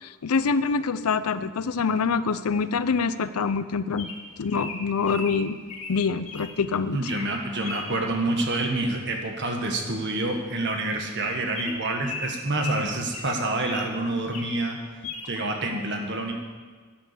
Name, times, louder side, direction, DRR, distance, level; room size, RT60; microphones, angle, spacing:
voice 1, 0.0-4.1 4.4-5.6 5.9-7.0, left 5 dB, 90° left, 13 dB, 0.5 m, -25 dB
Bird vocalization bird call bird song, 4.0-6.5 7.0-7.3 7.6-7.9 9.4-9.6 9.9-10.0 10.2-10.4 10.9-11.0 11.5-13.9 14.3-14.6 15.0-15.3, left 3 dB, 30° left, 1.8 m, -37 dB
voice 2, 6.9-14.8 15.2-16.3, right 2 dB, 55° right, 2 dB, 1.6 m, -27 dB
10.0 x 8.6 x 6.9 m, 1.5 s
head